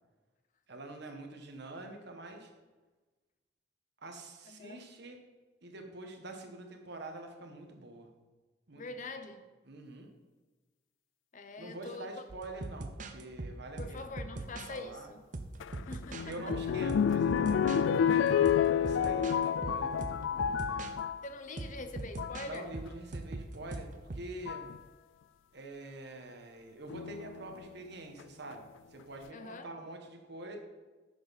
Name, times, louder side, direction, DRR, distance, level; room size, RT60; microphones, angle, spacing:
voice 1, 0.7-2.5 4.0-5.2 5.6-8.1 8.7-9.1 9.6-10.1 11.6-14.1 14.7-15.1 16.2-20.9 22.4-24.7 25.5-30.6, right 2 dB, 65° right, 4 dB, 1.3 m, -46 dB
voice 2, 4.5-4.9 8.7-9.5 11.3-12.1 13.8-15.3 15.8-16.3 21.2-22.7 29.3-29.7, left 3 dB, 45° left, 9 dB, 0.7 m, -44 dB
sound 1, 12.3-14.8 15.3-17.8 18.3-20.9 21.6-24.3, right 2 dB, 45° right, 0.7 m, -42 dB
sound 2, 15.6-21.2 22.0-22.4 23.7-23.8 24.5-24.8 26.9-27.5 28.2-28.3 28.5-28.6, left 8 dB, 90° left, 0.3 m, -29 dB
10.5 x 6.9 x 4.1 m, 1.2 s
head